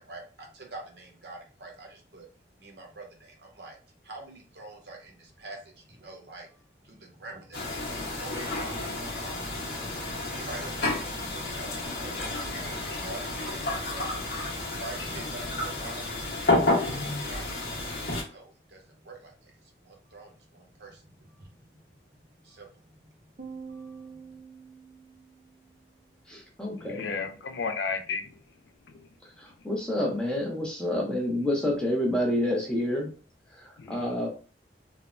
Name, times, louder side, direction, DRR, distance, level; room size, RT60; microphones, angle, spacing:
voice 1, 0.0-2.3 2.6-3.8 4.0-9.7 10.0-16.9 17.3-17.9 18.2-21.8 22.1-24.4, right 2 dB, 65° right, 1 dB, 0.7 m, -47 dB
sound 1, 7.5-18.2, left 2 dB, 60° left, 0.8 m, -31 dB
sound 2, 23.4-25.8, right 5 dB, 45° right, 0.4 m, -45 dB
voice 2, 26.3-27.0 29.2-33.1 33.5-34.3, left 1 dB, 5° left, -1 dB, 0.6 m, -29 dB
voice 3, 26.8-28.4 28.9-29.1 33.8-34.1, left 5 dB, 80° left, 7 dB, 0.4 m, -33 dB
3.2 x 2.0 x 2.5 m, 0.38 s
head